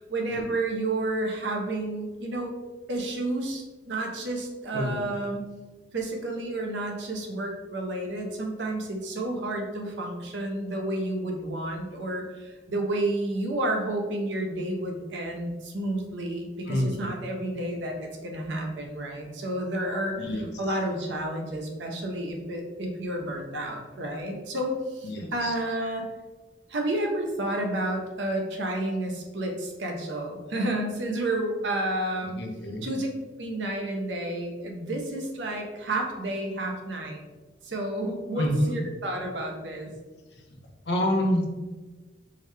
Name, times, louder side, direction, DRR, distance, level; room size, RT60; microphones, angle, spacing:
voice 1, 0.0-2.5 2.9-5.5 5.9-26.1 26.7-32.4 32.8-33.1 33.4-37.2 37.6-39.9, right 1 dB, 80° right, 2 dB, 0.6 m, -31 dB
voice 2, 4.7-5.0 16.7-17.1 20.2-20.5 25.0-25.5 32.4-32.9 38.4-38.9 40.3-40.4 40.9-41.5, equal, 65° left, 1 dB, 0.6 m, -27 dB
3.8 x 2.1 x 3.2 m, 1.2 s
head